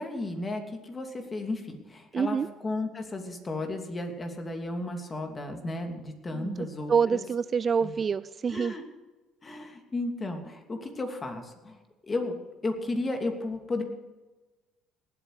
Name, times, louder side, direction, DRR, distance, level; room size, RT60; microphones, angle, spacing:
voice 1, 0.0-7.2 7.8-8.0 8.5-8.8 9.4-12.4 12.6-13.8, left 2 dB, 30° left, 4 dB, 2.7 m, -34 dB
voice 2, 2.1-2.5 6.3-6.6 6.9-8.7, right 6 dB, 40° right, 17 dB, 0.4 m, -26 dB
19.0 x 8.5 x 5.0 m, 1.2 s
hypercardioid pair, 65°, 0 cm